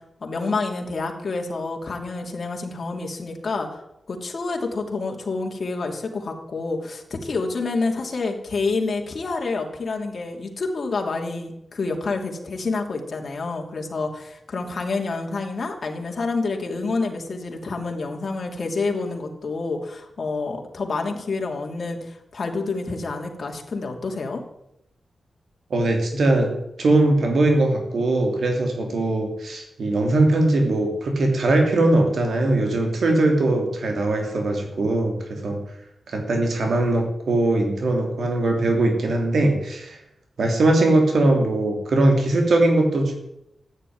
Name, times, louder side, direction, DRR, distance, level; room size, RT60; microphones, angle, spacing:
voice 1, 0.2-3.8 4.1-24.4, left 3 dB, 45° left, 2 dB, 2.9 m, -28 dB
voice 2, 25.7-26.5 26.8-35.6 36.1-40.0 40.4-43.1, right 2 dB, 65° right, 3 dB, 3.1 m, -20 dB
15.0 x 9.9 x 9.5 m, 0.83 s
wide cardioid pair, 150°, 0 cm